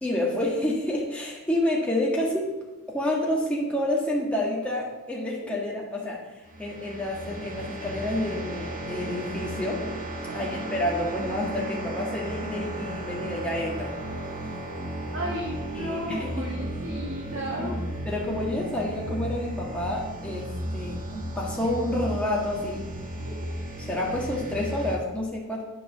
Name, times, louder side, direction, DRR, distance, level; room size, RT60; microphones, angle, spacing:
voice 1, 0.0-2.5 2.9-6.2 6.6-9.9 10.3-13.9 15.7-16.5 17.6-17.7 18.0-22.9 23.8-25.6, left 1 dB, 5° left, -4 dB, 1.4 m, -29 dB
sound 1, 6.5-25.0, right 1 dB, 35° right, 1.0 m, -34 dB
voice 2, 10.3-10.7 15.1-17.7, right 1 dB, 65° right, -4 dB, 1.6 m, -34 dB
9.2 x 4.8 x 6.0 m, 1.1 s
head